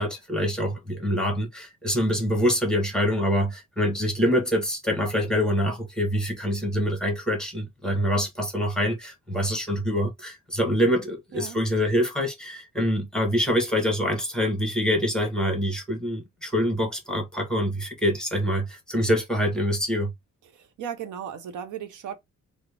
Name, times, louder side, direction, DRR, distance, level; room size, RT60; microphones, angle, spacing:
voice 1, 0.0-20.1, equal, ahead, 1.0 m, -25 dB
voice 2, 20.4-22.1, right 8 dB, 80° right, 0.9 m, -36 dB
4.0 x 2.0 x 3.3 m
wide cardioid pair, 155°, 30 cm